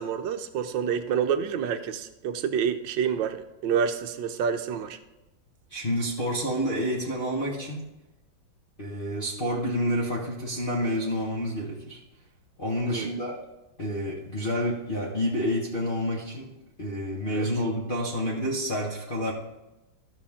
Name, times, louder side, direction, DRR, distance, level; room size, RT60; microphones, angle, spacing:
voice 1, 0.0-5.0 12.9-13.1 17.3-17.5, right 7 dB, 70° right, 9 dB, 1.4 m, -28 dB
voice 2, 5.7-7.8 8.8-12.0 12.6-13.4 13.8-16.5 16.8-19.3, equal, 30° left, -6 dB, 1.2 m, -29 dB
14.0 x 5.7 x 3.6 m, 0.97 s
omnidirectional pair, 2.2 m